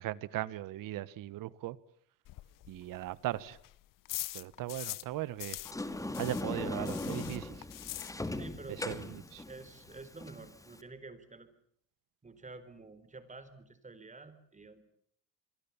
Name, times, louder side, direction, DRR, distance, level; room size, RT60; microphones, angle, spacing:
voice 1, 0.0-1.8 2.7-3.6 4.3-5.6 6.2-7.6 8.9-9.2, right 15 dB, 70° right, 19 dB, 1.3 m, -38 dB
sound 1, 2.2-5.1 5.4-8.6 8.8-8.9 9.3-9.4 9.5-10.0, left 16 dB, 65° left, 1.0 m, -43 dB
Sliding door, 5.6-10.8, left 2 dB, 10° left, 2.3 m, -39 dB
voice 2, 8.3-9.0 9.4-11.5 12.2-14.8, right 3 dB, 20° right, 13 dB, 4.1 m, -49 dB
27.5 x 22.5 x 7.2 m, 0.67 s
cardioid pair, 100°, 34 cm